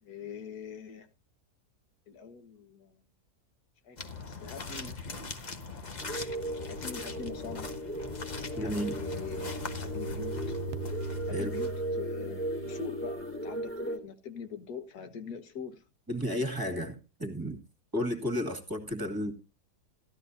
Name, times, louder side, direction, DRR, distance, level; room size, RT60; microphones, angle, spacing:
voice 1, 0.0-1.1 2.1-3.0 3.8-4.0 4.3-5.0 6.7-7.7 8.5-10.6 11.3-15.8, left 6 dB, 75° left, 1.7 m, -43 dB
sound 1, 4.0-12.1, left 4 dB, 30° left, 1.1 m, -41 dB
sound 2, 6.0-14.0, right 1 dB, 5° left, 2.1 m, -37 dB
sound 3, 8.1-13.7, right 3 dB, 60° right, 0.7 m, -41 dB
voice 2, 8.6-9.0 11.3-11.5 16.1-17.6 17.9-19.3, equal, 15° right, 2.1 m, -32 dB
15.5 x 11.5 x 2.6 m
omnidirectional pair, 1.7 m